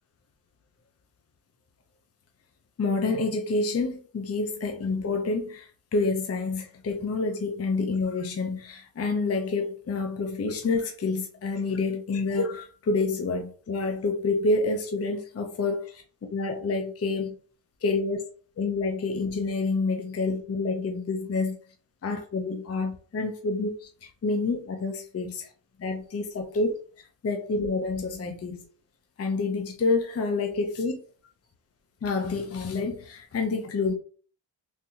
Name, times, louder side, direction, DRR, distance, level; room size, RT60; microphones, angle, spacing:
voice 1, 2.8-16.0 16.3-17.4 17.8-18.2 18.6-21.6 22.0-23.9 24.2-25.3 25.8-26.8 27.2-28.6 29.2-31.0 32.0-33.9, left 3 dB, 30° left, 0.6 m, -28 dB
3.4 x 2.7 x 2.7 m
cardioid pair, 60°, 46 cm